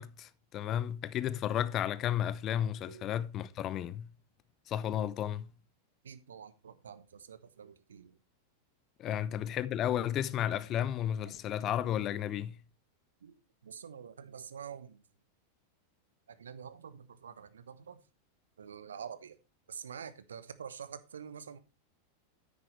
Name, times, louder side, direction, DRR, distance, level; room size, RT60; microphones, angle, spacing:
voice 1, 0.0-4.1 4.7-5.5 9.0-12.6, left 10 dB, 35° left, 0.6 m, -33 dB
voice 2, 6.0-8.2 9.0-9.2 11.2-11.5 13.2-15.0 16.3-18.0 18.6-19.4 19.7-21.6, right 7 dB, 70° right, 0.9 m, -47 dB
9.9 x 8.9 x 3.2 m
figure-of-eight pair, 90°, 0 cm